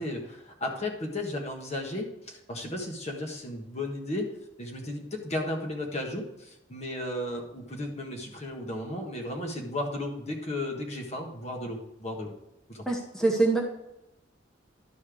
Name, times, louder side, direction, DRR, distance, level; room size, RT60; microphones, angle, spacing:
voice 1, 0.0-4.3 4.6-12.3 12.7-12.8, left 1 dB, 40° left, 1 dB, 1.5 m, -34 dB
voice 2, 12.9-13.6, right 3 dB, 5° left, -1 dB, 1.0 m, -24 dB
12.0 x 4.4 x 4.9 m, 0.85 s
head